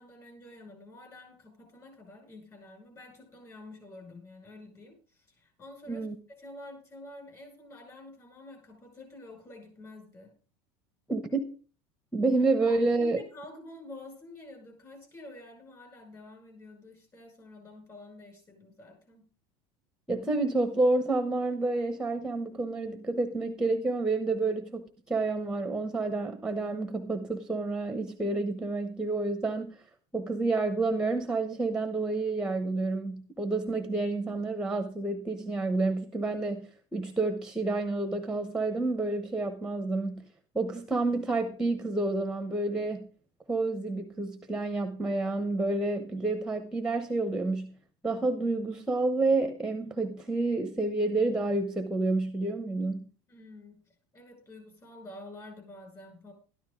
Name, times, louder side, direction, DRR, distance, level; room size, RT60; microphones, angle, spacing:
voice 1, 0.0-10.3 12.6-19.3 53.3-56.3, left 1 dB, 25° left, 3 dB, 5.5 m, -49 dB
voice 2, 11.1-11.4 12.1-13.2 20.1-29.8 30.1-40.3 40.5-43.1 43.5-47.8 48.0-53.1, right 3 dB, 5° right, 8 dB, 1.0 m, -29 dB
12.5 x 12.0 x 3.8 m, 0.39 s
supercardioid pair, 140°, 13 cm